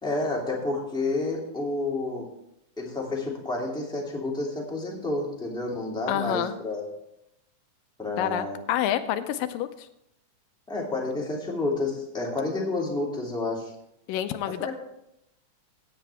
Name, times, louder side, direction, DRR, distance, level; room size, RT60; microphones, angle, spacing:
voice 1, 0.0-2.3 2.8-6.9 8.0-8.6 10.7-13.7 14.4-14.7, left 2 dB, ahead, -3 dB, 2.3 m, -30 dB
voice 2, 6.1-6.5 8.2-9.9 14.1-14.7, left 11 dB, 85° left, 10 dB, 2.4 m, -28 dB
16.0 x 8.5 x 3.5 m, 0.79 s
omnidirectional pair, 3.8 m